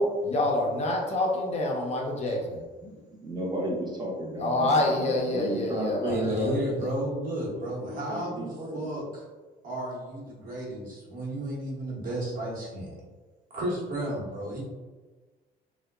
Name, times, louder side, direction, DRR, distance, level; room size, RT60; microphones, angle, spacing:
voice 1, 0.0-2.6 4.4-6.5, left 1 dB, 40° left, 0 dB, 0.5 m, -27 dB
voice 2, 3.2-6.8 7.5-8.9, right 1 dB, 25° right, -3 dB, 0.7 m, -33 dB
voice 3, 6.1-9.3 9.6-12.9 13.5-14.6, right 1 dB, 55° right, -5 dB, 1.0 m, -33 dB
2.7 x 2.1 x 2.3 m, 1.3 s
cardioid pair, 110°, 17 cm